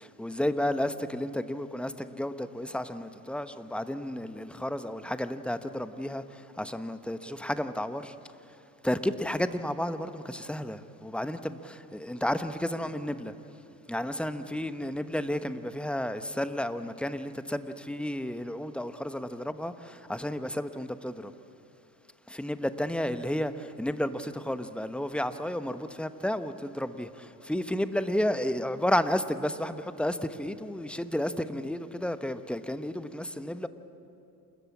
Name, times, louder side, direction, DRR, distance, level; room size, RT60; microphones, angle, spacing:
voice 1, 0.0-8.1 8.8-13.3 13.9-21.3 22.3-33.7, left 1 dB, ahead, 11 dB, 1.0 m, -32 dB
28.5 x 13.5 x 8.6 m, 2.7 s
hypercardioid pair, 70°, 46 cm